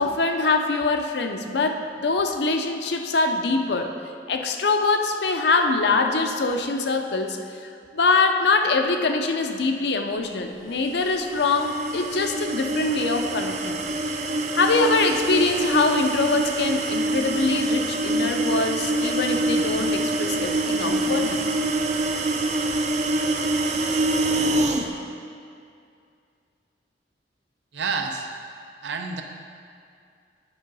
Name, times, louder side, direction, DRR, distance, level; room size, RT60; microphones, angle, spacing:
voice 1, 0.0-3.9 4.3-7.4 7.9-13.8 14.5-21.5, left 3 dB, 70° left, 5 dB, 0.6 m, -23 dB
sound 1, 10.9-24.9, right 2 dB, 40° right, 0.5 m, -25 dB
voice 2, 27.7-28.3 28.8-29.2, right 4 dB, 85° right, 4 dB, 0.6 m, -28 dB
9.0 x 3.7 x 5.4 m, 2.3 s
head